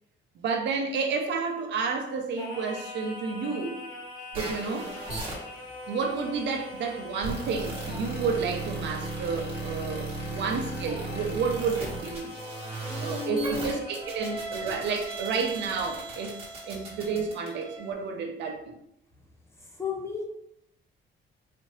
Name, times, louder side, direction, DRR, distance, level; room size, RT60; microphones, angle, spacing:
voice 1, 0.4-3.8 4.3-4.9 5.9-12.3 13.0-16.4 16.6-18.7, right 5 dB, 60° right, 0.8 m, -30 dB
Singing, 2.4-14.4, left 2 dB, 75° left, 0.9 m, -42 dB
sound 1, 4.3-17.9, right 2 dB, 30° right, 1.4 m, -37 dB
voice 2, 10.2-10.6 12.8-13.8 19.6-20.2, left 5 dB, 15° left, 0.7 m, -35 dB
4.1 x 2.8 x 3.2 m
cardioid pair, 155°, 20 cm